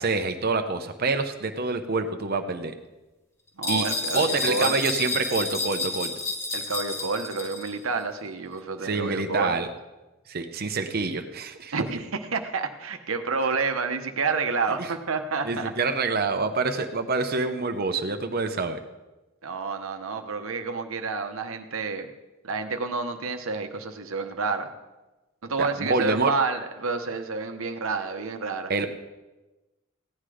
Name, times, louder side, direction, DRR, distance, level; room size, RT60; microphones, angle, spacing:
voice 1, 0.0-2.7 3.7-3.9 4.1-6.1 8.8-9.7 10.3-11.7 14.8-14.9 15.4-18.8 25.6-26.3 28.7-28.9, right 3 dB, 45° right, 7 dB, 0.8 m, -26 dB
sound 1, 3.6-7.8, left 3 dB, 15° left, 1.8 m, -30 dB
voice 2, 3.6-4.7 6.5-9.6 11.7-15.7 19.4-22.1 22.4-24.7 25.4-28.7, right 4 dB, 75° right, 6 dB, 1.0 m, -29 dB
16.0 x 9.7 x 5.0 m, 1.1 s
head